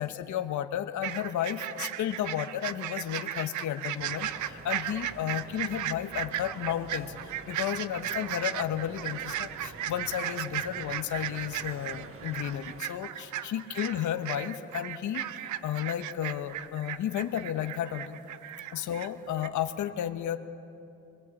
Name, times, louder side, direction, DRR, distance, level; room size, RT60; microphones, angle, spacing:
voice 1, 0.0-18.2 18.7-20.4, left 10 dB, 75° left, 8 dB, 1.3 m, -33 dB
sound 1, 1.0-19.1 19.4-19.5, right 12 dB, 75° right, 0.9 m, -36 dB
sound 2, 4.0-12.8, right 4 dB, 45° right, 1.6 m, -48 dB
27.0 x 22.0 x 8.6 m, 2.6 s
cardioid pair, 90°, 30 cm